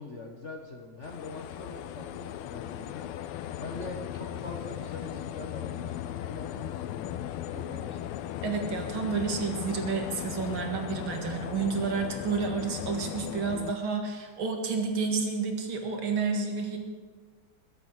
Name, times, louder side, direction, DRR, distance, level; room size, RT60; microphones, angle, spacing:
voice 1, 0.0-8.1, left 2 dB, 40° left, 3 dB, 1.2 m, -43 dB
sound 1, 1.0-13.7, left 12 dB, 85° left, 1.5 m, -37 dB
voice 2, 8.4-16.8, right 5 dB, 70° right, 3 dB, 2.5 m, -30 dB
21.0 x 8.0 x 6.5 m, 1.5 s
omnidirectional pair, 2.4 m